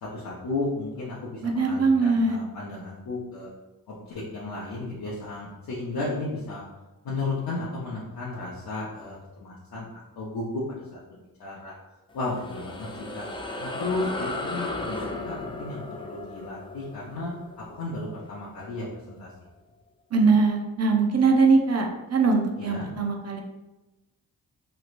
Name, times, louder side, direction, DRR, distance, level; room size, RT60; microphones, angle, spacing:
voice 1, 0.0-3.5 3.9-6.6 7.0-9.9 10.2-10.6 11.4-11.7 12.1-12.9 13.1-13.3 13.6-17.3 17.7-19.3 22.6-22.9, left 2 dB, 65° left, -5 dB, 0.8 m, -33 dB
voice 2, 1.4-2.4 20.1-23.4, right 4 dB, 40° right, 2 dB, 0.5 m, -22 dB
sound 1, 12.1-18.9, left 2 dB, 15° left, 0.4 m, -36 dB
3.1 x 2.9 x 2.5 m, 1.0 s
cardioid pair, 60°, 39 cm